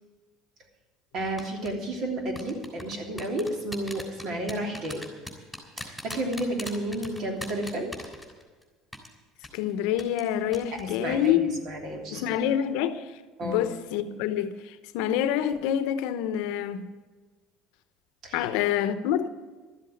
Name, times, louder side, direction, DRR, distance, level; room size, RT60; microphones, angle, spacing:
voice 1, 1.1-5.1 5.8-7.9 11.0-12.4 13.4-13.6 18.2-18.5, right 1 dB, 55° right, 3.1 m, -32 dB
sound 1, 1.4-1.7 2.3-8.6 8.9-9.1 9.4-9.6 10.0-10.3 10.5-10.8 11.1-11.3, left 1 dB, ahead, 3.3 m, -39 dB
voice 2, 9.5-11.6 12.1-16.9 18.3-19.3, left 10 dB, 80° left, 0.8 m, -27 dB
12.5 x 7.7 x 9.5 m
supercardioid pair, 115°, 0 cm